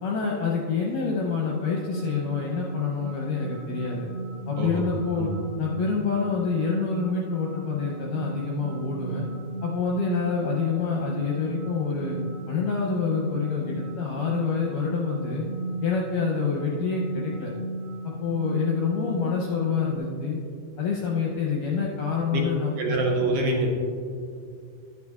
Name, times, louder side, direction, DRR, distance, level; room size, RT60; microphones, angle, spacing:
voice 1, 0.0-4.1 4.5-5.3 5.6-9.3 9.6-12.2 12.5-15.4 15.8-17.5 18.0-20.4 20.8-23.2, left 5 dB, 75° left, -2 dB, 2.0 m, -27 dB
sound 1, 1.5-20.0, right 2 dB, 50° right, 1.1 m, -35 dB
voice 2, 22.8-23.7, right 2 dB, 70° right, 0 dB, 2.5 m, -25 dB
12.0 x 9.7 x 2.4 m, 2.3 s
omnidirectional pair, 4.7 m